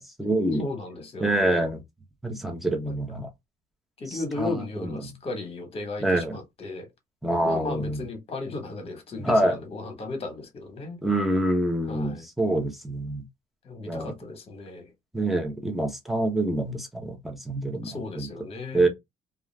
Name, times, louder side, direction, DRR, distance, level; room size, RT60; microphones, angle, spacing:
voice 1, 0.0-0.6 1.2-1.8 2.2-3.3 4.1-4.5 4.8-5.1 6.0-6.4 7.2-8.0 9.2-9.6 11.0-13.2 13.9-14.1 15.1-18.3 18.7-18.9, right 1 dB, ahead, 0.7 m, -26 dB
voice 2, 0.6-1.7 2.8-3.0 4.0-6.9 7.4-11.0 11.9-12.2 13.6-14.9 17.8-18.9, left 3 dB, 35° left, 1.1 m, -35 dB
2.4 x 2.3 x 3.2 m
cardioid pair, 110°, 17 cm